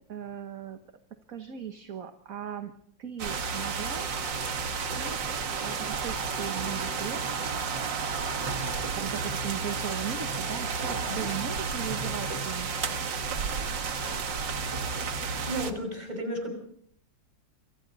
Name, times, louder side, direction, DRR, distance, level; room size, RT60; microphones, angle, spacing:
voice 1, 0.1-0.8 1.3-2.7 3.0-4.1 4.7-5.2 5.6-7.2 8.9-13.1, right 9 dB, 50° right, 7 dB, 1.6 m, -38 dB
sound 1, 3.2-15.7, right 5 dB, 70° right, 2.3 m, -32 dB
voice 2, 15.5-16.5, right 1 dB, 20° right, 4 dB, 5.9 m, -33 dB
27.5 x 25.0 x 4.1 m, 0.65 s
omnidirectional pair, 2.1 m